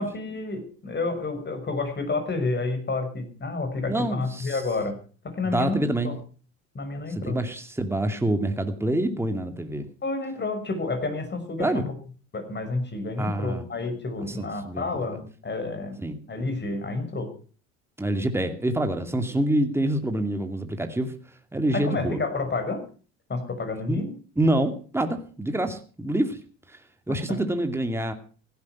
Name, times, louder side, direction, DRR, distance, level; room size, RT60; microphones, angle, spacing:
voice 1, 0.0-4.9 5.2-6.1 6.7-7.4 10.0-11.8 12.3-16.0 16.3-17.3 21.7-22.8 23.3-24.1 27.1-27.5, left 3 dB, 30° left, 7 dB, 6.1 m, -30 dB
voice 2, 3.9-4.6 5.5-6.1 7.2-9.9 11.6-11.8 13.2-13.6 14.3-14.9 15.1-15.2 16.0-16.2 18.0-21.1 21.5-22.2 23.9-24.0 24.4-26.4 27.1-28.1, right 1 dB, 5° right, 6 dB, 2.5 m, -26 dB
16.0 x 12.0 x 6.0 m, 0.39 s
hypercardioid pair, 75°, 35 cm